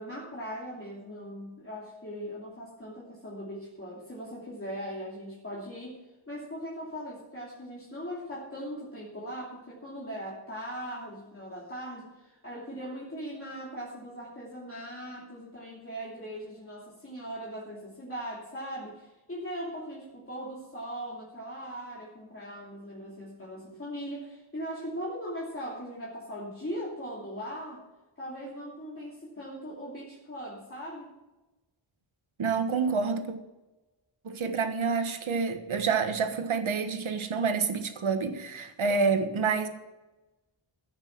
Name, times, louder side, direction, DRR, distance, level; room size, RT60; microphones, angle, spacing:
voice 1, 0.0-6.0 6.3-27.8 28.2-31.1, equal, 25° left, 2.8 m, -39 dB
voice 2, 32.4-33.3 34.2-39.7, right 5 dB, 75° right, 1.4 m, -28 dB
15.0 x 6.7 x 6.0 m
wide cardioid pair, 130°, 49 cm